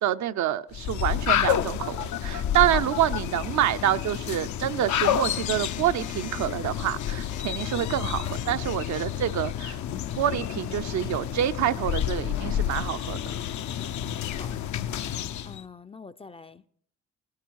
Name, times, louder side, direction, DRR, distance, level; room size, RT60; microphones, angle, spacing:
voice 1, 0.0-9.8 10.2-13.3, right 11 dB, 65° right, 0.7 m, -27 dB
sound 1, 0.7-15.6, left 10 dB, 70° left, 0.8 m, -30 dB
Telephone, 1.8-3.2 4.9-9.2, left 9 dB, 90° left, 1.1 m, -39 dB
voice 2, 15.4-16.7, left 4 dB, 20° left, 0.5 m, -45 dB
19.0 x 12.5 x 4.7 m
cardioid pair, 90°, 30 cm